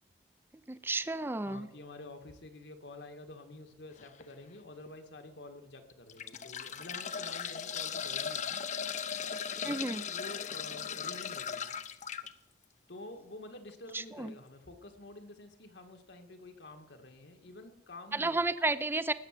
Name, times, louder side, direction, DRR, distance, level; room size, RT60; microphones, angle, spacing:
voice 1, 0.7-1.7 9.6-10.0 13.9-14.3 18.1-19.1, right 2 dB, 10° right, 14 dB, 0.5 m, -32 dB
voice 2, 1.4-8.6 9.6-11.7 12.9-18.4, left 2 dB, 75° left, 5 dB, 1.8 m, -49 dB
sound 1, 4.0-4.2 4.9-5.0 5.9-12.3 13.9-14.0 14.3-14.4, left 7 dB, 40° left, 0.7 m, -38 dB
19.0 x 7.1 x 7.4 m, 0.89 s
head